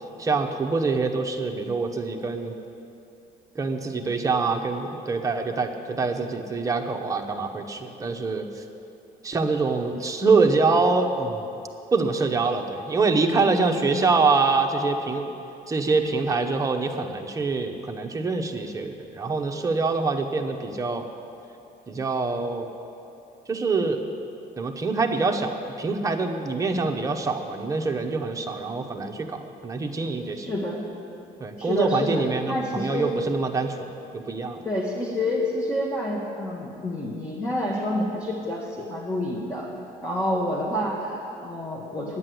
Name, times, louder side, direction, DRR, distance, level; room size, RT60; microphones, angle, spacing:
voice 1, 0.2-2.5 3.5-8.6 9.2-11.4 11.9-15.3 15.7-21.1 21.9-22.7 23.5-24.0 24.6-30.5 31.4-33.8 34.1-34.6, right 4 dB, 20° right, 3 dB, 1.0 m, -25 dB
voice 2, 13.8-14.1 30.3-30.9 31.6-33.1 34.6-39.7 40.0-42.2, left 1 dB, 15° left, -3 dB, 1.4 m, -28 dB
9.7 x 9.0 x 7.8 m, 2.8 s
cardioid pair, 110°, 17 cm